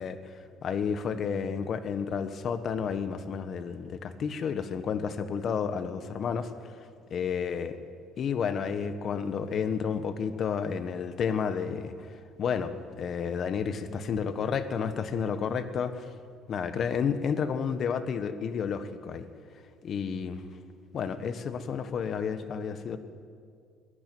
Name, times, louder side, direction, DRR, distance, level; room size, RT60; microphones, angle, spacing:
voice 1, 0.0-6.7 7.1-7.8 8.2-16.1 16.5-19.3 19.8-20.4 20.9-23.0, left 6 dB, 45° left, 11 dB, 1.5 m, -31 dB
21.5 x 13.0 x 9.4 m, 2.2 s
cardioid pair, 115°, 0 cm